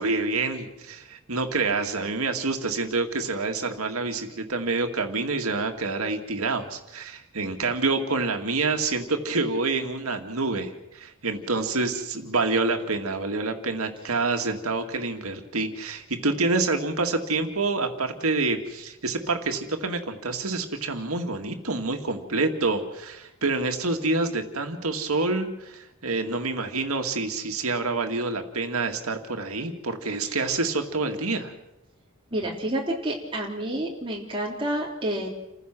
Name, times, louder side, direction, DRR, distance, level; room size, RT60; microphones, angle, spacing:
voice 1, 0.0-31.5, right 3 dB, 90° right, 5 dB, 2.2 m, -27 dB
voice 2, 32.3-35.3, right 1 dB, 25° right, -2 dB, 3.5 m, -29 dB
29.0 x 15.5 x 6.2 m, 0.93 s
head